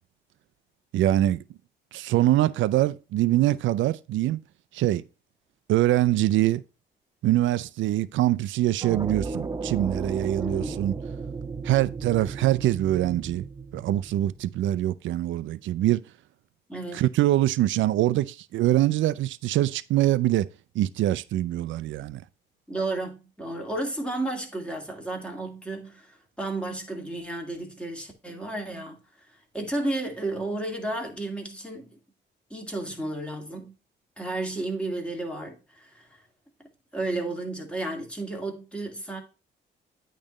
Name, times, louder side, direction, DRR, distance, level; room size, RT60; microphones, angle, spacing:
voice 1, 0.9-1.4 1.9-4.4 4.7-5.0 5.7-6.6 7.2-11.0 11.6-13.5 13.7-16.0 16.9-20.5 20.7-22.2, right 14 dB, 75° right, 0.5 m, -24 dB
sound 1, 8.8-14.7, right 4 dB, 20° right, 0.5 m, -35 dB
voice 2, 10.4-10.8 16.7-17.0 22.7-29.0 29.5-32.0 32.5-33.7 34.2-36.2 36.9-39.2, right 2 dB, 5° left, 2.1 m, -32 dB
8.8 x 3.2 x 5.3 m
cardioid pair, 90°, 20 cm